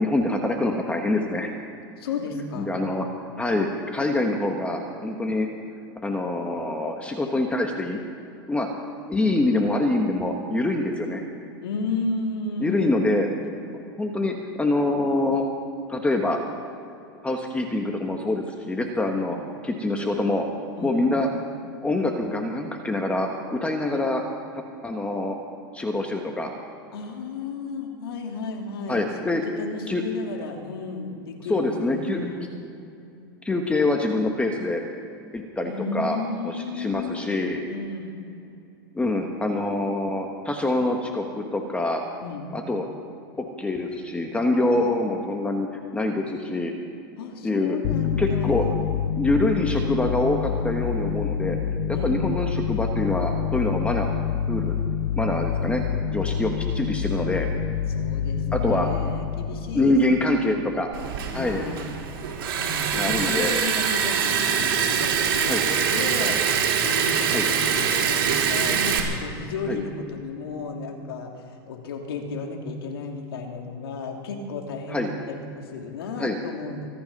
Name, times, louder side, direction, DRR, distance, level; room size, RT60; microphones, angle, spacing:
voice 1, 0.0-1.5 2.6-3.1 3.4-5.5 6.0-8.0 8.5-8.7 9.1-11.2 12.6-13.3 14.0-15.5 15.9-16.4 17.2-19.4 19.6-20.4 20.8-21.3 21.8-24.2 24.8-25.4 25.7-26.5 28.9-29.4 29.9-30.0 31.5-32.3 33.4-34.9 35.3-36.2 36.4-37.6 38.9-42.0 42.5-42.9 43.4-46.7 47.4-47.8 48.2-48.6 49.1-51.6 51.9-54.1 54.5-54.7 55.2-55.8 56.1-57.5 58.5-58.9 59.7-60.9 61.3-61.6 62.9-63.5 65.5-65.6 67.3-67.5 69.7-69.8 74.9-75.1 76.2-76.4, left 2 dB, 10° left, 2 dB, 1.5 m, -25 dB
voice 2, 2.0-2.7 11.6-13.5 20.8-21.1 26.9-32.5 35.6-37.2 37.7-38.2 42.2-42.5 44.7-44.8 47.2-48.8 51.9-52.2 57.9-60.6 61.3-61.9 62.6-76.9, left 4 dB, 85° left, 2 dB, 3.0 m, -33 dB
sound 1, 47.8-61.0, left 7 dB, 65° left, 0.8 m, -27 dB
Liquid, 60.9-69.0, right 7 dB, 70° right, 3.6 m, -24 dB
24.5 x 10.5 x 5.5 m, 2.7 s
hypercardioid pair, 120°, 12 cm